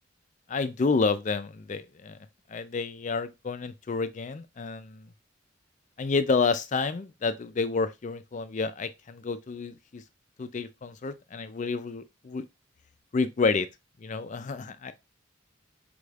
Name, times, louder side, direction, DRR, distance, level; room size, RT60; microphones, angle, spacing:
voice 1, 0.5-2.2 2.5-5.1 6.0-10.0 10.4-12.5 13.1-13.7 14.0-14.9, left 4 dB, 40° left, 0.4 m, -29 dB
5.1 x 3.3 x 2.4 m
head